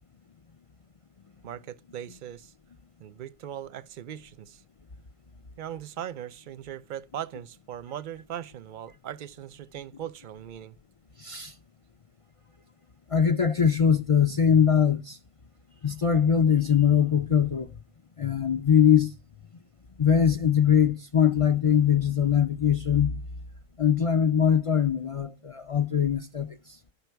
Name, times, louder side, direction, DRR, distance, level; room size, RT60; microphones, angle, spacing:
voice 1, 1.4-2.5 3.0-4.6 5.6-10.8, right 10 dB, 50° right, 0.7 m, -39 dB
voice 2, 11.2-11.5 13.1-15.2 15.8-17.7 18.2-19.1 20.0-23.2 23.8-26.8, left 8 dB, 55° left, 0.3 m, -22 dB
12.0 x 5.7 x 4.5 m
omnidirectional pair, 1.3 m